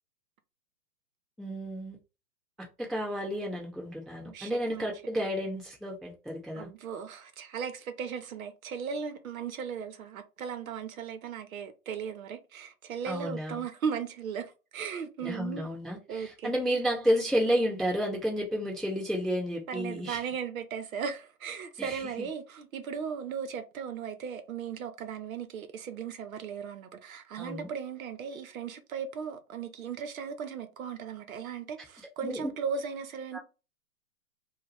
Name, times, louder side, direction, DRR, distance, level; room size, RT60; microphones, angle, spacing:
voice 1, 1.4-2.0 2.6-6.7 13.0-13.6 15.2-20.2 21.8-22.3 27.4-27.7 32.2-32.5 33.3-33.4, equal, ahead, 0.4 m, -31 dB
voice 2, 4.2-4.9 6.5-15.7 16.1-16.5 19.7-33.4, right 6 dB, 60° right, 0.8 m, -37 dB
3.0 x 2.3 x 3.4 m
hypercardioid pair, 145°, 47 cm